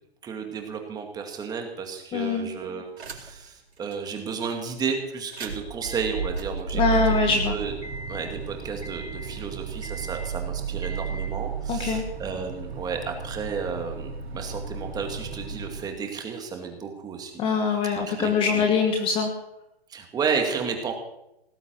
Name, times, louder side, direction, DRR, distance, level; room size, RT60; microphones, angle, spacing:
voice 1, 0.2-7.8 8.1-17.4 18.1-18.7 19.9-20.9, right 6 dB, 10° right, 3 dB, 2.2 m, -32 dB
voice 2, 2.1-2.5 6.7-7.5 11.7-12.0 17.4-19.3, left 5 dB, 15° left, 4 dB, 1.4 m, -23 dB
sound 1, 3.0-3.5 3.9-4.0 5.2-15.8, right 5 dB, 85° right, 3.9 m, -33 dB
18.5 x 7.9 x 9.5 m, 0.86 s
hypercardioid pair, 145°, 31 cm